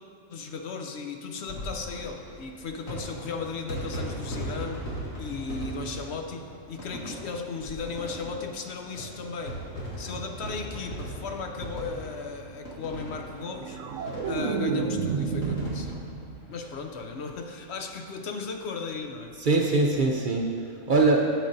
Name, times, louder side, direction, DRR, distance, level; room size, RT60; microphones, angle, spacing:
voice 1, 0.3-4.9 5.2-9.6 10.0-16.0 16.5-19.4, left 4 dB, 65° left, 4 dB, 0.8 m, -36 dB
sound 1, 1.4-17.4 17.7-17.8 18.0-18.1 19.4-19.6, equal, 90° left, 2.2 m, -39 dB
sound 2, 13.4-16.6 16.9-17.3, right 5 dB, 80° right, 0.9 m, -30 dB
voice 2, 19.4-21.2, right 3 dB, 50° right, 0 dB, 0.6 m, -23 dB
12.0 x 8.2 x 2.6 m, 2.4 s
omnidirectional pair, 1.3 m